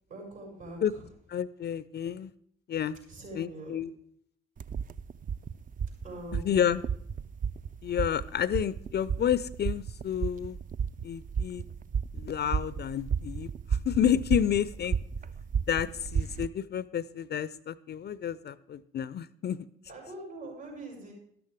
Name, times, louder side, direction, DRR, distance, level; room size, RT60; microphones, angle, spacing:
voice 1, 0.1-1.1 3.1-3.8 6.0-6.6 7.3-7.6 11.8-12.0 15.3-15.4 19.9-21.1, right 1 dB, 70° right, -3 dB, 6.3 m, -44 dB
voice 2, 1.3-2.3 2.7-3.0 3.4-3.9 6.3-6.8 7.8-10.6 11.0-11.6 12.1-13.5 13.9-15.0 15.7-19.6, left 9 dB, 35° left, 18 dB, 0.5 m, -30 dB
sound 1, 4.6-16.5, right 6 dB, 30° right, 0.4 m, -34 dB
13.0 x 12.5 x 3.5 m, 0.68 s
figure-of-eight pair, 40°, 29 cm